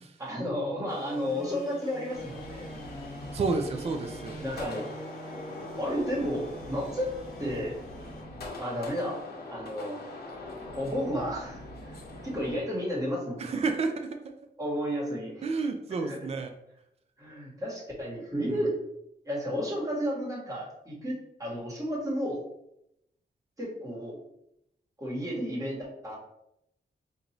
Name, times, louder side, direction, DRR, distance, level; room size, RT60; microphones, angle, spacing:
voice 1, 0.2-3.0 4.4-4.9 5.8-7.1 7.4-7.8 8.6-9.2 9.5-10.1 10.7-11.9 12.2-13.5 14.6-15.4 16.1-16.2 17.2-18.7 19.2-22.4 23.6-24.2 25.0-26.2, equal, 20° right, -4 dB, 1.4 m, -32 dB
sound 1, 0.9-8.2, equal, 5° left, 1.1 m, -44 dB
sound 2, 2.1-12.6, left 2 dB, 70° left, 0.9 m, -42 dB
voice 2, 3.3-4.4 13.4-14.2 15.4-16.5 18.5-18.7, right 4 dB, 40° right, 5 dB, 0.4 m, -30 dB
5.2 x 2.6 x 2.9 m, 0.80 s
wide cardioid pair, 150°, 17 cm